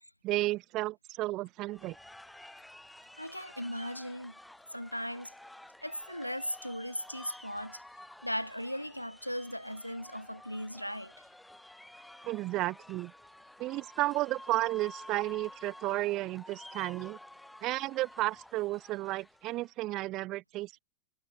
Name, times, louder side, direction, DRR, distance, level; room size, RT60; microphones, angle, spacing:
voice 1, 0.2-2.0 12.2-13.1 13.6-17.2 17.6-20.8, right 18 dB, 40° right, 0.7 m, -33 dB
sound 1, 1.7-19.7, left 1 dB, 5° left, 2.9 m, -51 dB
voice 2, 3.2-4.3 4.7-5.3 5.8-7.8 8.2-11.1, equal, 90° left, 1.1 m, -37 dB
figure-of-eight pair, 90°, 0 cm